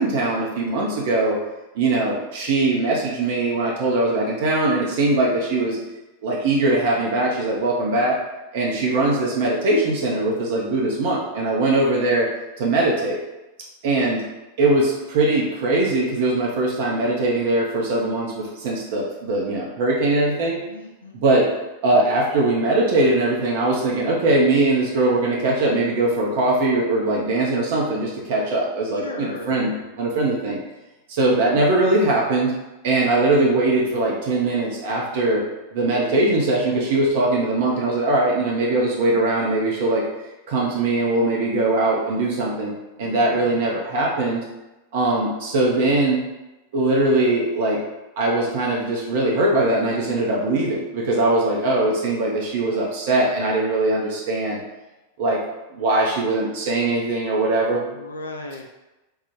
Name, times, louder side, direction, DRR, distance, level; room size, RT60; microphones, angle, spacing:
voice 1, 0.0-1.4 1.7-5.8 6.2-8.2 8.5-12.3 12.6-13.2 13.8-14.2 14.6-20.6 21.1-21.5 21.8-30.6 31.1-32.5 32.8-35.4 35.7-40.1 40.5-42.7 43.0-44.4 44.9-46.2 46.7-47.8 48.2-54.6 55.2-55.4 55.7-57.8, right 2 dB, 50° right, -3 dB, 0.5 m, -21 dB
voice 2, 20.7-21.2 28.9-29.9 43.0-43.8 57.9-58.6, left 2 dB, 75° left, 2 dB, 0.3 m, -37 dB
3.3 x 2.1 x 3.0 m, 1.0 s
figure-of-eight pair, 90°, 0 cm